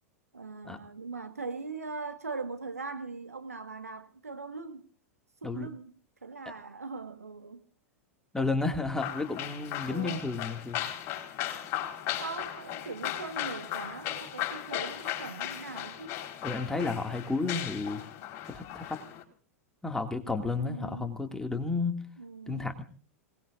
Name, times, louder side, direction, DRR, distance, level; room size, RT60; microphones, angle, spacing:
voice 1, 0.3-4.9 5.4-5.9 6.2-7.6 9.9-10.3 12.2-16.2 20.5-21.1 22.2-22.7, right 4 dB, 80° right, 8 dB, 1.5 m, -40 dB
voice 2, 8.3-10.8 16.4-18.0 18.4-19.0 19.8-22.0 22.5-22.8, left 3 dB, 5° left, 6 dB, 2.2 m, -32 dB
sound 1, 9.0-19.2, left 12 dB, 40° left, 4.1 m, -37 dB
26.0 x 19.5 x 2.6 m, 0.42 s
figure-of-eight pair, 90°, 8 cm